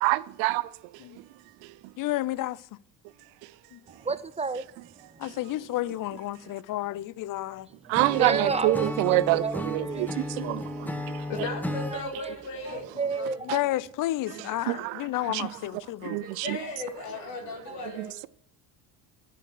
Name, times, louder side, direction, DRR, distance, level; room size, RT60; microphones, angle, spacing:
voice 1, 0.0-0.6 7.9-10.9 14.7-15.0 15.3-15.5 16.0-16.6 18.0-18.1, right 19 dB, 70° right, 0.6 m, -26 dB
voice 2, 2.0-2.6 3.7-3.8 5.2-7.7 10.3-10.6 13.5-16.2, left 15 dB, 45° left, 0.5 m, -31 dB
voice 3, 3.9-4.7 5.1-5.2 8.1-11.2 11.9-12.3 12.7-13.6 17.7-17.8, right 4 dB, 15° right, 0.4 m, -32 dB
Acoustic guitar / Strum, 7.9-12.0, left 1 dB, 5° left, 1.1 m, -34 dB
voice 4, 11.3-12.9 13.1-13.4 16.1-18.3, left 2 dB, 80° left, 2.0 m, -36 dB
10.5 x 5.7 x 6.1 m
supercardioid pair, 75°, 48 cm